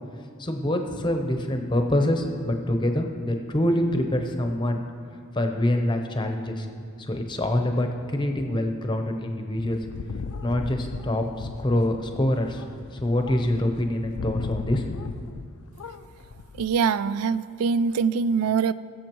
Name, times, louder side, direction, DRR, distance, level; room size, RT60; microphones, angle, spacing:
voice 1, 0.4-4.8 5.3-6.7 7.0-9.8 10.4-12.6 12.9-15.0, left 1 dB, 20° left, 5 dB, 0.7 m, -25 dB
sound 1, 9.6-15.5 15.8-16.7, left 4 dB, 80° left, 0.4 m, -37 dB
voice 2, 16.6-18.7, right 5 dB, 90° right, 16 dB, 0.3 m, -23 dB
21.0 x 7.2 x 3.0 m, 2.4 s
head